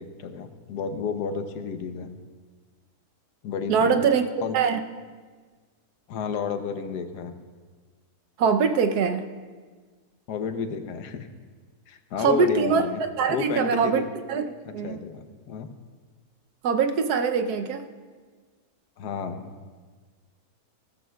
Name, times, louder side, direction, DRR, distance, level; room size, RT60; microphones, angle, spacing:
voice 1, 0.0-2.1 3.4-4.1 4.4-4.5 6.1-7.3 10.3-11.3 11.9-13.0 13.3-14.0 14.8-15.7 19.0-19.4, left 6 dB, 85° left, 8 dB, 1.4 m, -31 dB
voice 2, 3.7-4.2 4.5-4.8 8.4-9.3 12.2-12.8 13.2-14.0 14.3-14.4 14.7-15.0 16.6-17.9, right 6 dB, 80° right, 7 dB, 1.3 m, -22 dB
16.5 x 14.0 x 2.3 m, 1.5 s
omnidirectional pair, 1.7 m